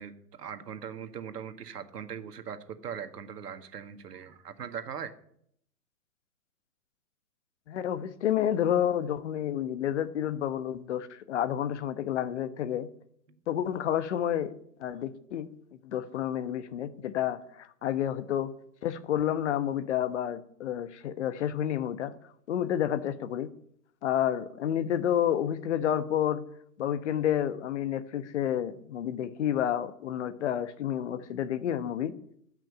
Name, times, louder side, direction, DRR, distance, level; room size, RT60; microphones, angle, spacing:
voice 1, 0.0-5.1 13.3-13.4, right 7 dB, 75° right, 9 dB, 1.7 m, -40 dB
voice 2, 7.7-12.9 13.5-14.5 14.8-15.5 15.8-18.5 18.8-22.1 22.5-23.5 24.0-26.4 26.8-32.1, left 10 dB, 45° left, 13 dB, 1.1 m, -30 dB
15.0 x 6.1 x 10.0 m, 0.69 s
hypercardioid pair, 145°, 48 cm